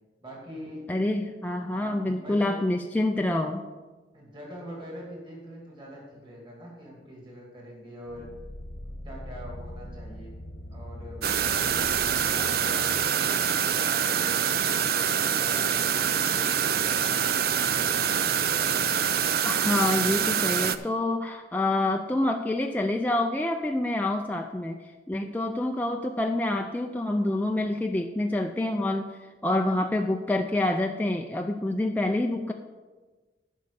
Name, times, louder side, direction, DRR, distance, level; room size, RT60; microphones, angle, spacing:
voice 1, 0.2-0.9 1.7-2.6 4.1-8.3 9.0-10.4 10.7-14.2 14.5-18.3, equal, 30° right, -2 dB, 2.5 m, -44 dB
voice 2, 0.9-3.6 19.4-24.8 25.1-29.1 29.4-32.5, left 1 dB, 10° left, 3 dB, 0.4 m, -27 dB
sound 1, 8.1-13.1, left 1 dB, 85° left, 1.2 m, -42 dB
sound 2, 11.2-20.8, right 8 dB, 60° right, 0.4 m, -25 dB
10.5 x 5.5 x 6.8 m, 1.3 s
head